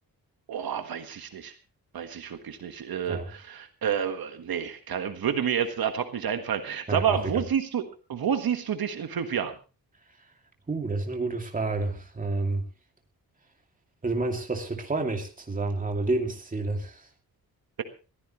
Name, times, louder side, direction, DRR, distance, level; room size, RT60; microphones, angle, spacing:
voice 1, 0.5-1.5 1.9-7.8 8.1-9.5, right 8 dB, 75° right, 8 dB, 1.6 m, -29 dB
voice 2, 6.9-7.3 10.7-12.6 14.0-17.1, right 3 dB, 20° right, 3 dB, 2.5 m, -29 dB
21.5 x 15.0 x 3.1 m, 0.33 s
wide cardioid pair, 160°, 37 cm